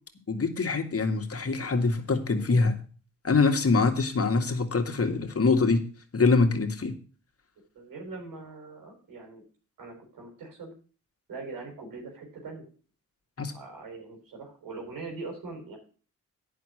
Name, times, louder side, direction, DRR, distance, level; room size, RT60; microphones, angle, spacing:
voice 1, 0.3-2.8 3.2-5.9 6.1-7.0 13.4-13.5, left 4 dB, 40° left, 5 dB, 2.2 m, -24 dB
voice 2, 7.7-9.4 9.8-10.7 11.3-12.7 13.5-15.8, right 3 dB, 75° right, 1 dB, 4.8 m, -41 dB
9.0 x 6.4 x 7.9 m, 0.39 s
supercardioid pair, 50°, 34 cm